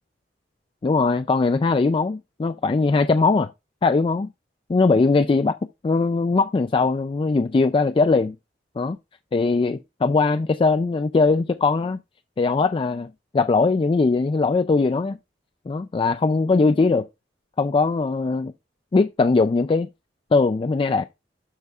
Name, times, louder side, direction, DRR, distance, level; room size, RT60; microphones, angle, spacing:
voice 1, 0.8-3.5 3.8-4.3 4.7-5.6 5.8-8.4 8.8-9.0 9.3-12.0 12.4-15.2 15.7-17.0 17.6-18.5 18.9-19.9 20.3-21.1, left 3 dB, 30° left, 0.3 m, -20 dB
12.0 x 4.6 x 2.4 m
head